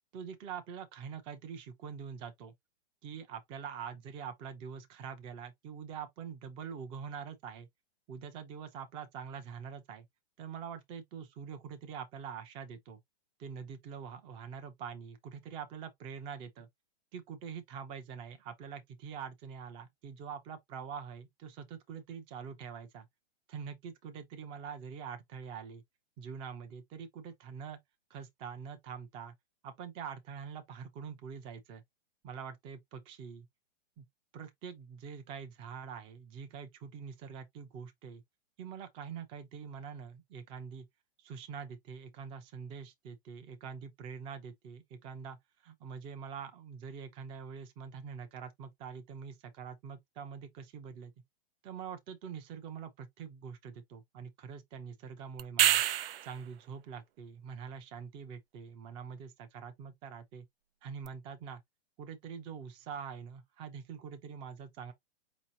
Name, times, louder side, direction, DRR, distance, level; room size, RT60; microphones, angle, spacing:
voice 1, 0.1-2.5 3.0-7.7 8.1-10.1 10.4-13.0 13.4-16.7 17.1-23.1 23.5-25.8 26.2-27.8 28.1-29.3 29.6-31.8 32.2-33.5 34.0-34.1 34.3-38.2 38.6-40.9 41.2-45.4 45.6-51.1 51.6-55.8 56.2-60.5 60.8-61.6 62.0-64.9, right 7 dB, 15° right, 0.6 m, -44 dB
sound 1, 55.4-56.4 61.0-61.1, right 12 dB, 60° right, 0.5 m, -26 dB
4.9 x 2.9 x 2.7 m
hypercardioid pair, 160°, 33 cm